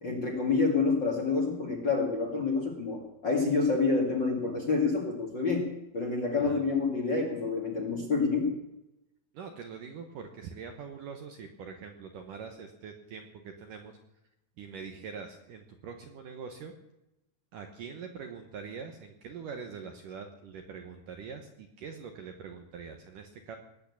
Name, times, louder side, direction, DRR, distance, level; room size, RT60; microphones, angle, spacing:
voice 1, 0.0-8.6, left 4 dB, 35° left, 1 dB, 1.9 m, -28 dB
voice 2, 9.3-14.0 14.6-16.7 17.5-23.6, right 6 dB, 65° right, 5 dB, 2.2 m, -43 dB
19.5 x 8.8 x 8.5 m, 0.90 s
omnidirectional pair, 5.0 m